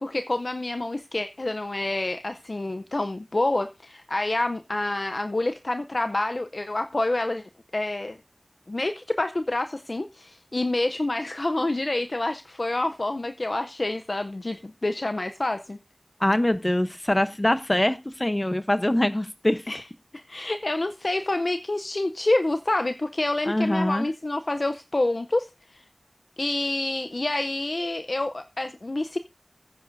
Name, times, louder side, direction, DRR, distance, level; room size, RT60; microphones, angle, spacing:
voice 1, 0.0-7.4 7.7-8.2 8.7-15.8 19.7-19.8 20.1-25.8 26.4-29.2, left 2 dB, 80° left, 0.6 m, -27 dB
voice 2, 16.2-19.7 23.5-24.1, left 1 dB, 35° left, 0.8 m, -23 dB
18.0 x 9.8 x 2.6 m
wide cardioid pair, 40°, 0 cm